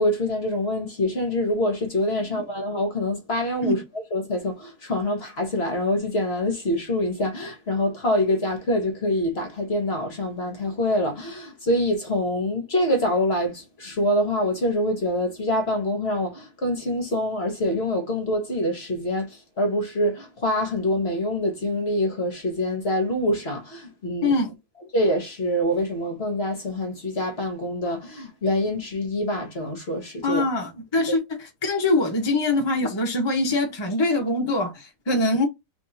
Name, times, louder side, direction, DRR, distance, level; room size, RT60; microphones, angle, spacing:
voice 1, 0.0-3.8 4.1-24.3 24.9-30.4, left 1 dB, 40° left, 1.2 m, -25 dB
voice 2, 24.2-24.5 30.2-35.5, left 2 dB, 25° left, 0.6 m, -23 dB
3.5 x 3.5 x 2.7 m
omnidirectional pair, 1.8 m